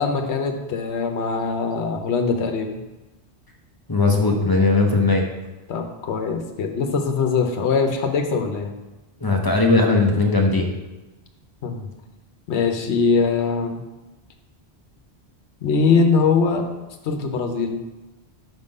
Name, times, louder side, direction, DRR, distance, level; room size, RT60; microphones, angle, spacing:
voice 1, 0.0-2.8 5.7-8.7 11.6-11.9 12.5-13.8 15.6-16.6 17.0-17.8, left 5 dB, 80° left, 4 dB, 1.0 m, -22 dB
voice 2, 3.9-5.2 9.2-10.7, left 3 dB, 25° left, 1 dB, 0.7 m, -18 dB
5.9 x 3.7 x 5.3 m, 1.1 s
omnidirectional pair, 1.1 m